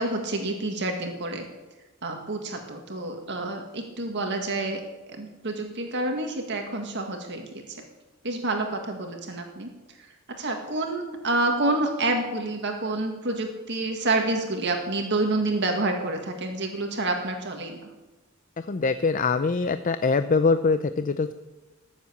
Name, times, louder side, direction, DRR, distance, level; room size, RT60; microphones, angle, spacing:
voice 1, 0.0-1.5 2.0-4.8 5.1-7.8 8.2-9.7 10.0-17.9, right 2 dB, 60° right, 3 dB, 1.9 m, -28 dB
voice 2, 18.6-21.3, left 4 dB, 40° left, 11 dB, 0.5 m, -23 dB
18.5 x 7.6 x 8.5 m, 1.1 s
head